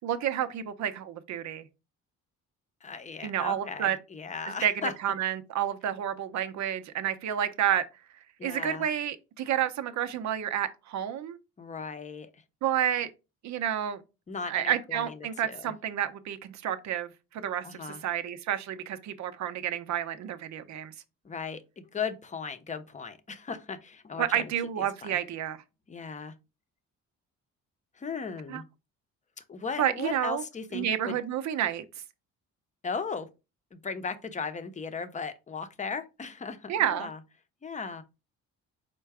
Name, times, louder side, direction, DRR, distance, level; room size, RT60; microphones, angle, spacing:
voice 1, 0.0-1.7 3.2-4.0 4.5-4.7 5.0-7.8 8.4-11.4 12.6-13.1 13.4-14.0 14.5-20.9 24.2-25.6 28.5-28.6 29.8-30.4 30.7-31.8 36.7-37.1, right 10 dB, 65° right, 0.7 m, -30 dB
voice 2, 2.8-4.9 8.4-8.9 11.6-12.4 14.3-15.7 17.6-18.0 21.2-24.5 25.0-25.2 25.9-26.3 28.0-28.6 29.5-31.2 32.8-33.3 33.7-37.2 37.6-38.0, left 5 dB, 25° left, 0.6 m, -37 dB
4.5 x 2.2 x 4.6 m
cardioid pair, 90°, 30 cm